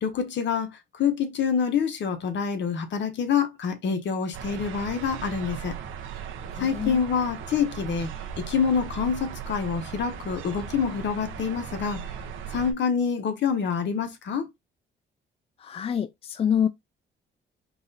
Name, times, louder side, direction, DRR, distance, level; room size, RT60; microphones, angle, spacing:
voice 1, 0.0-5.7 6.6-8.1 8.4-12.0 12.5-14.5, left 6 dB, 65° left, 1.2 m, -26 dB
sound 1, 4.3-12.7, right 7 dB, 80° right, 0.9 m, -37 dB
voice 2, 6.5-7.0 15.6-16.7, left 8 dB, 30° left, 0.4 m, -26 dB
4.7 x 2.6 x 4.0 m
cardioid pair, 90°, 20 cm